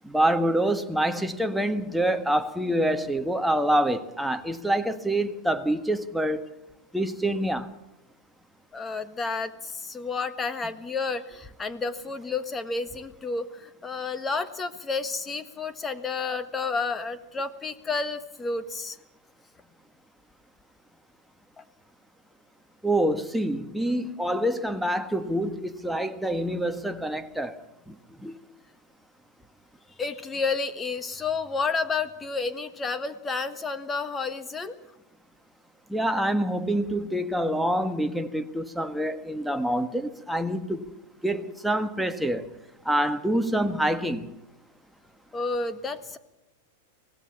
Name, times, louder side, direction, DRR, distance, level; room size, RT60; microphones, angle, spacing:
voice 1, 0.0-6.4 6.9-7.7 22.8-27.6 27.9-28.0 28.2-28.4 35.9-40.9 41.2-42.5 42.8-44.3, right 1 dB, ahead, 1.5 m, -26 dB
voice 2, 8.7-19.0 21.6-21.7 30.0-34.8 45.3-46.2, left 4 dB, 20° left, 1.6 m, -31 dB
24.5 x 18.0 x 7.2 m
hypercardioid pair, 100°, 0 cm